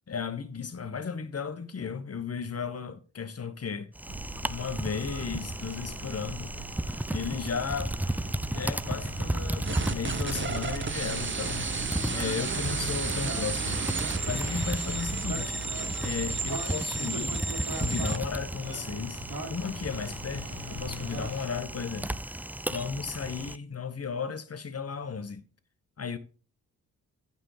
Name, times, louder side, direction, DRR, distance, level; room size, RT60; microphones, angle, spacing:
voice 1, 0.1-3.9 4.5-6.5 7.1-7.9 8.5-11.7 12.0-13.9 14.2-15.7 16.0-17.5 17.8-19.2 19.5-22.2 22.7-25.4 26.0-26.2, left 6 dB, 40° left, 1.2 m, -35 dB
Typing, 3.9-23.6, right 1 dB, 5° right, 0.4 m, -35 dB
sound 1, 4.0-21.4, right 1 dB, 65° right, 2.8 m, -39 dB
sound 2, 9.6-18.2, right 5 dB, 30° right, 0.8 m, -33 dB
9.0 x 5.4 x 5.0 m
supercardioid pair, 45°, 37 cm